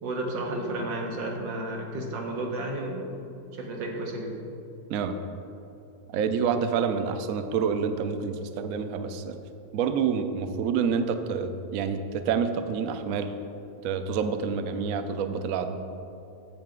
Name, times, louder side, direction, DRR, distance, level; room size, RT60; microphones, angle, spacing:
voice 1, 0.0-3.2 3.5-4.4, right 1 dB, 90° right, 1 dB, 1.8 m, -32 dB
voice 2, 6.1-9.4 9.7-13.3 13.8-15.8, right 6 dB, 70° right, 8 dB, 0.8 m, -28 dB
8.9 x 7.7 x 3.7 m, 2.8 s
omnidirectional pair, 1.9 m